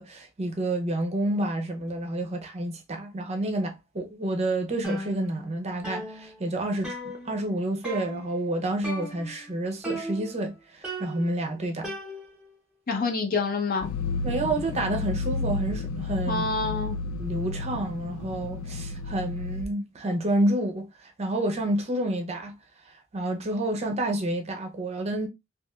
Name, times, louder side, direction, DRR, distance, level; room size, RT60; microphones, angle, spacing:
voice 1, 0.0-11.9 14.2-16.5 17.2-22.5 23.1-25.3, right 1 dB, 30° right, 0.5 m, -29 dB
sound 1, 4.8-5.6 5.8-7.5 7.8-8.4 8.8-9.5 9.8-10.5 10.8-12.5, equal, 5° right, 0.9 m, -37 dB
voice 2, 12.9-13.9 16.3-17.0, left 4 dB, 45° left, 0.7 m, -27 dB
sound 2, 13.8-19.7, left 3 dB, 75° left, 0.3 m, -32 dB
3.0 x 2.8 x 2.3 m
head